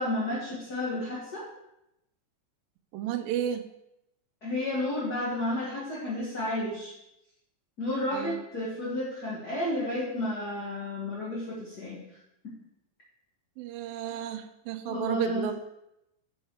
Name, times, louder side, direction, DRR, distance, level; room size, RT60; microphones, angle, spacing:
voice 1, 0.0-1.5 4.4-6.9 7.8-12.0 14.9-15.5, left 1 dB, 35° left, -6 dB, 1.8 m, -32 dB
voice 2, 2.9-3.6 8.1-8.4 13.6-15.5, right 10 dB, 85° right, 9 dB, 2.4 m, -32 dB
10.0 x 5.5 x 4.8 m, 0.84 s
omnidirectional pair, 4.1 m